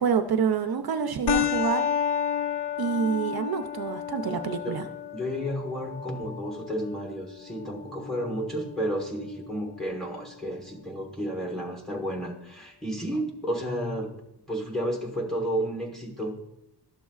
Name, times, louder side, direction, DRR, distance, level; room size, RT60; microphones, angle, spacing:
voice 1, 0.0-1.8 2.8-4.9, right 6 dB, 60° right, 7 dB, 0.5 m, -27 dB
sound 1, 1.3-10.3, left 7 dB, 80° left, 0.5 m, -32 dB
voice 2, 5.1-14.1 14.5-16.3, equal, ahead, 0 dB, 1.4 m, -32 dB
13.0 x 7.1 x 2.4 m, 0.86 s
wide cardioid pair, 160°, 41 cm